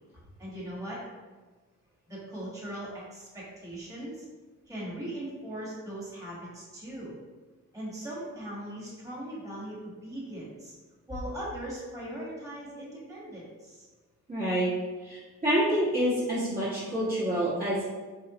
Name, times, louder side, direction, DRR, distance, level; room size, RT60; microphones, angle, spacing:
voice 1, 0.4-1.0 2.1-4.2 4.7-7.2 7.7-10.7 11.1-13.9, right 1 dB, 10° right, -7 dB, 1.5 m, -39 dB
voice 2, 14.3-14.7 15.0-17.9, equal, 25° right, -11 dB, 1.2 m, -27 dB
4.4 x 3.1 x 2.9 m, 1.3 s
wide cardioid pair, 115°, 32 cm